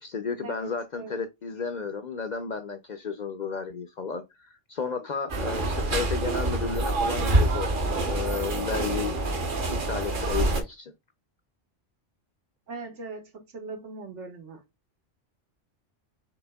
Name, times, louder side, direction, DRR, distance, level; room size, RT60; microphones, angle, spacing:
voice 1, 0.0-9.2 9.7-10.9, left 5 dB, 55° left, 0.5 m, -33 dB
Train from Kanchanaburi to Bangkok Thailand, 5.3-10.6, right 2 dB, 50° right, 1.1 m, -26 dB
voice 2, 12.7-14.6, right 3 dB, 85° right, 1.6 m, -40 dB
5.9 x 3.4 x 2.2 m
omnidirectional pair, 1.2 m